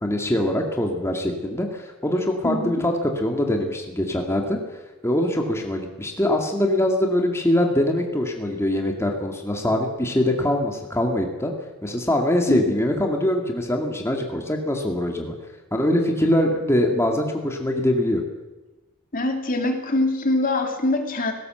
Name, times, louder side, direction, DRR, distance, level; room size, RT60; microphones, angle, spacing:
voice 1, 0.0-4.6 5.0-11.5 11.8-15.4 15.7-18.2, left 1 dB, 15° left, 2 dB, 2.2 m, -23 dB
voice 2, 2.4-2.8 12.5-12.8 19.1-21.3, left 2 dB, 40° left, 4 dB, 2.7 m, -24 dB
19.5 x 17.5 x 7.9 m, 1.1 s
head